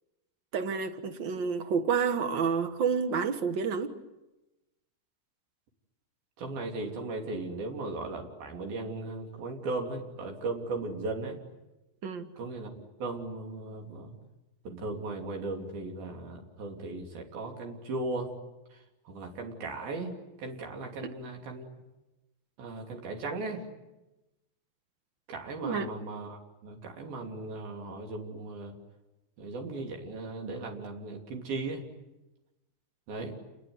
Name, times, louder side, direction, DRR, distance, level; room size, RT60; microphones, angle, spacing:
voice 1, 0.5-3.9 12.0-12.2 21.0-21.1 25.6-25.9, right 6 dB, 55° right, 9 dB, 1.3 m, -29 dB
voice 2, 6.4-11.4 12.4-12.7 13.0-14.2 14.6-18.3 19.1-21.7 22.6-23.6 25.3-28.7 29.4-31.8 33.1-33.4, right 3 dB, 80° right, 1 dB, 4.9 m, -37 dB
29.5 x 20.5 x 9.6 m, 1.0 s
omnidirectional pair, 4.2 m